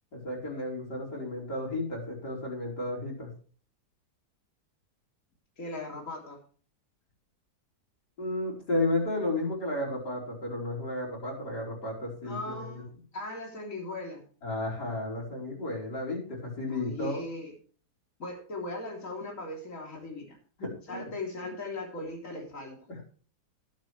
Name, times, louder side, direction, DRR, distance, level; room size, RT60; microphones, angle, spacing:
voice 1, 0.1-3.3 8.2-12.8 14.4-17.2 20.6-21.0 22.9-23.0, left 2 dB, 85° left, -2 dB, 5.7 m, -33 dB
voice 2, 5.6-6.4 12.2-12.9 13.1-14.3 16.7-17.5 18.2-20.4 20.9-22.8, left 2 dB, 50° left, 0 dB, 3.9 m, -38 dB
20.0 x 8.5 x 3.3 m, 0.42 s
omnidirectional pair, 1.7 m